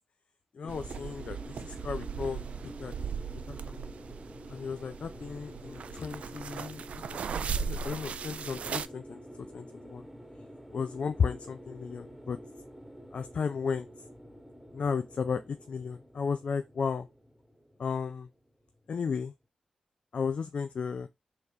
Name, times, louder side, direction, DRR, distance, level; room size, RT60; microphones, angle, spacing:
voice 1, 0.5-3.1 3.5-3.9 4.5-7.0 7.3-9.2 9.5-10.1 10.7-12.4 13.1-13.9 14.7-17.1 17.8-18.3 18.9-19.3 20.1-21.1, left 6 dB, 65° left, 0.4 m, -34 dB
sound 1, 0.6-19.0, equal, 5° right, 1.3 m, -48 dB
sound 2, 0.7-8.9, right 6 dB, 75° right, 0.3 m, -38 dB
4.6 x 2.9 x 3.2 m
supercardioid pair, 40°, 2 cm